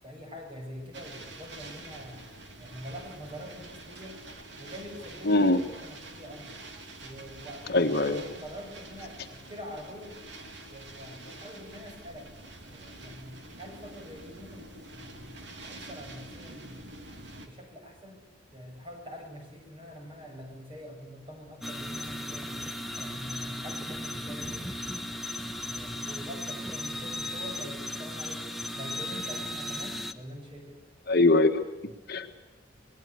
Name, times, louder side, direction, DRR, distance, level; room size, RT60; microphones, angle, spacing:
voice 1, 0.0-4.3 4.6-5.5 5.8-6.6 7.0-10.2 10.7-12.3 12.6-15.3 15.6-16.8 17.1-18.3 18.5-22.7 23.0-30.8, equal, 30° right, 3 dB, 7.5 m, -45 dB
sound 1, 0.9-17.5, right 2 dB, 65° right, 3.3 m, -46 dB
voice 2, 5.2-5.6 7.7-8.2 31.1-32.4, left 2 dB, 55° left, 6 dB, 1.6 m, -23 dB
sound 2, 21.6-30.1, left 1 dB, ahead, 1.2 m, -36 dB
25.5 x 20.0 x 8.3 m, 1.1 s
head